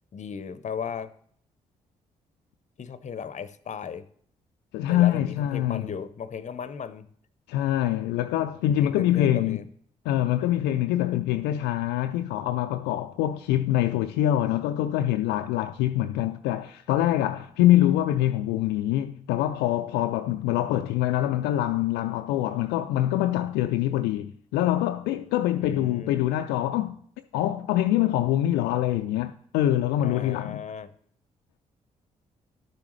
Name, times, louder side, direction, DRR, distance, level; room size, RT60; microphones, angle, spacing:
voice 1, 0.1-1.1 2.8-4.0 4.9-7.1 8.8-9.6 25.5-26.1 30.0-30.9, left 7 dB, 45° left, 0.7 m, -36 dB
voice 2, 4.7-5.9 7.5-9.6 10.1-27.0 27.3-30.6, left 13 dB, 75° left, 0.4 m, -24 dB
11.5 x 6.9 x 3.1 m
hypercardioid pair, 40°, 18 cm